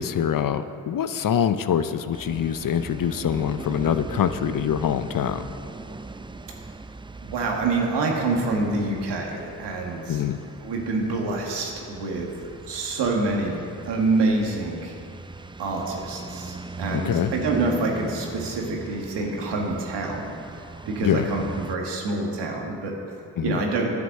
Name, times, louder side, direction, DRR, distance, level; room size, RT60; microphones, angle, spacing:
voice 1, 0.0-5.5 10.1-10.4 16.9-17.3 21.0-21.3 23.4-23.6, left 8 dB, 55° left, 11 dB, 0.7 m, -24 dB
sound 1, 2.1-21.8, right 3 dB, 10° right, 0.5 m, -40 dB
voice 2, 7.2-10.2 10.6-12.3 12.6-14.9 15.6-22.9 23.4-23.9, right 3 dB, 85° right, 0 dB, 1.7 m, -26 dB
10.5 x 7.9 x 6.5 m, 2.5 s
supercardioid pair, 45°, 41 cm